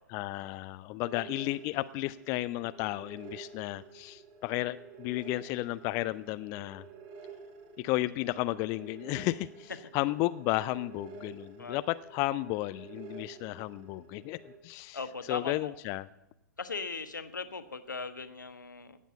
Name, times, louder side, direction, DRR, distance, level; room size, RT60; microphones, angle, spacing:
voice 1, 0.1-6.8 7.8-15.0 15.3-16.1, left 18 dB, 30° left, 14 dB, 0.4 m, -33 dB
sound 1, 1.0-14.6, right 5 dB, 40° right, 2.2 m, -50 dB
voice 2, 14.9-15.7 16.6-19.0, left 4 dB, 75° left, 10 dB, 1.2 m, -38 dB
16.5 x 7.3 x 8.4 m, 0.92 s
figure-of-eight pair, 110°, 10 cm